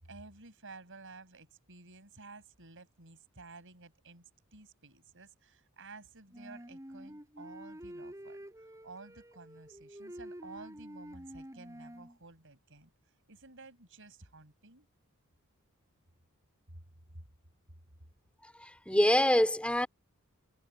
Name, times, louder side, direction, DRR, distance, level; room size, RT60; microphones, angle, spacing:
voice 1, 0.1-4.2 4.5-8.4 8.8-12.9 13.3-14.9 16.7-16.8, right 3 dB, 60° right, 6.5 m, -52 dB
Wind instrument woodwind instrument, 6.3-12.2, equal, 15° right, 5.7 m, -48 dB
voice 2, 18.4-19.9, left 1 dB, 5° left, 2.8 m, -26 dB
head